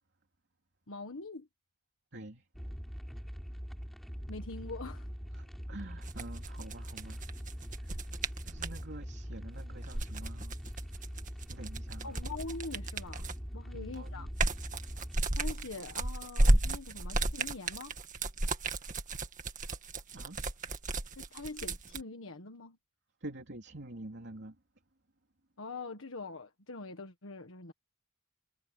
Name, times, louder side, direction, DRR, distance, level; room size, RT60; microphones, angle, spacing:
voice 1, 0.9-1.5 4.3-5.1 12.0-14.3 15.3-18.0 21.2-22.8 25.6-27.7, left 3 dB, 65° left, 1.5 m, -43 dB
voice 2, 2.1-2.5 5.3-7.2 7.8-8.0 8.4-10.9 11.5-12.2 13.7-14.3 20.1-20.4 23.2-24.6, right 1 dB, 55° right, 3.1 m, -47 dB
sound 1, 2.5-15.2, equal, ahead, 3.2 m, -43 dB
sound 2, 6.0-8.8 9.7-13.5 13.9-22.0, right 2 dB, 40° right, 1.9 m, -33 dB
head